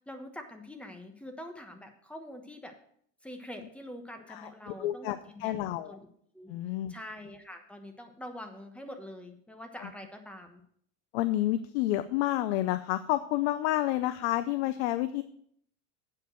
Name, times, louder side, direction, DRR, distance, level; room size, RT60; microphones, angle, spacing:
voice 1, 0.1-2.7 3.2-5.6 5.9-6.1 6.3-6.5 6.9-10.6, left 1 dB, 5° left, 5 dB, 1.2 m, -45 dB
voice 2, 4.3-6.0 6.5-6.9 9.8-9.9 11.1-15.2, left 15 dB, 75° left, 12 dB, 0.6 m, -30 dB
8.5 x 5.4 x 7.6 m, 0.65 s
supercardioid pair, 130°, 34 cm